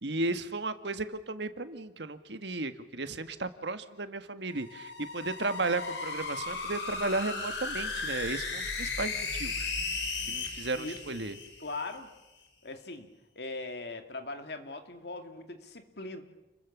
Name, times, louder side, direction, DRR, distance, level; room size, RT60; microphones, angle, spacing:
voice 1, 0.0-9.7 10.2-11.3, right 2 dB, 70° right, 10 dB, 1.6 m, -34 dB
sound 1, 4.5-12.0, left 4 dB, 80° left, 5.1 m, -36 dB
voice 2, 10.7-11.2 11.6-12.1 12.6-13.1 13.4-16.2, left 2 dB, 65° left, 6 dB, 2.5 m, -40 dB
29.5 x 22.0 x 7.3 m, 1.0 s
head